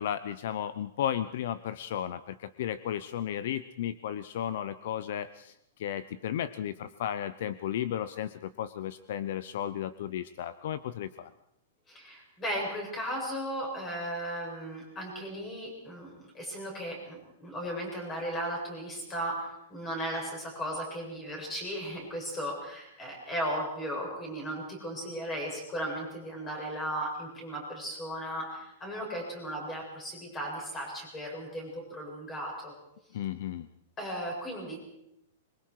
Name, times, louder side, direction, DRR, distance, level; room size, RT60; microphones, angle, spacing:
voice 1, 0.0-11.3 33.1-33.7, left 10 dB, 60° left, 14 dB, 0.8 m, -34 dB
voice 2, 11.9-32.7 34.0-34.8, equal, 15° left, 0 dB, 7.4 m, -36 dB
25.5 x 23.0 x 4.8 m, 0.80 s
supercardioid pair, 165°, 0 cm